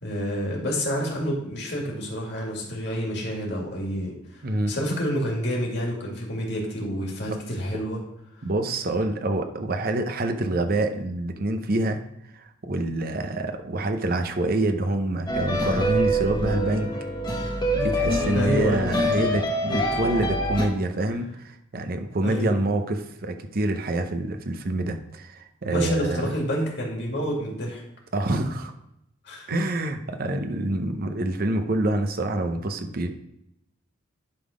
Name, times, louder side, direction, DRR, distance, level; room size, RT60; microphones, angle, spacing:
voice 1, 0.0-4.4 4.7-8.0 18.3-19.3 22.2-22.5 25.7-27.8 29.2-29.6, equal, 60° left, -1 dB, 2.2 m, -28 dB
voice 2, 4.4-4.8 7.3-7.4 8.4-12.0 12.3-16.9 17.7-26.3 28.1-28.7 29.5-33.1, right 2 dB, 50° right, 6 dB, 0.7 m, -26 dB
sound 1, 15.3-20.7, equal, 25° left, 1.1 m, -25 dB
10.5 x 3.8 x 5.0 m, 0.82 s
head